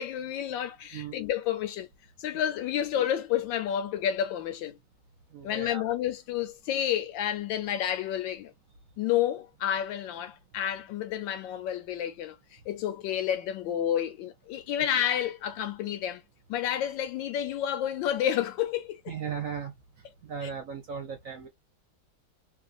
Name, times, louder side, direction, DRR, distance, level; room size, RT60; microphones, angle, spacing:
voice 1, 0.0-1.9 2.2-4.8 5.4-8.5 9.0-12.4 12.7-16.2 16.5-19.1 20.4-20.5, left 10 dB, 80° left, 1.3 m, -30 dB
voice 2, 5.3-5.8 19.1-19.7 20.3-21.5, right 7 dB, 60° right, 0.9 m, -36 dB
3.1 x 2.4 x 2.4 m
omnidirectional pair, 2.1 m